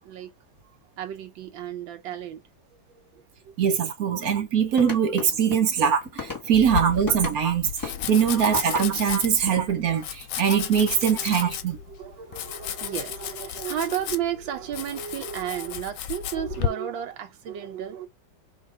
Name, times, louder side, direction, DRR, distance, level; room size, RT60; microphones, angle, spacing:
voice 1, 0.0-0.3 1.0-2.4 3.1-3.2 7.9-8.1 10.7-11.5 11.9-18.1, right 10 dB, 80° right, 1.5 m, -33 dB
voice 2, 3.6-11.8, right 8 dB, 65° right, 1.0 m, -22 dB
sound 1, 4.7-7.4 7.8-9.7, left 5 dB, 10° left, 1.2 m, -36 dB
Domestic sounds home sounds, 6.5-16.7, left 10 dB, 75° left, 1.1 m, -34 dB
3.5 x 2.9 x 4.7 m
omnidirectional pair, 2.1 m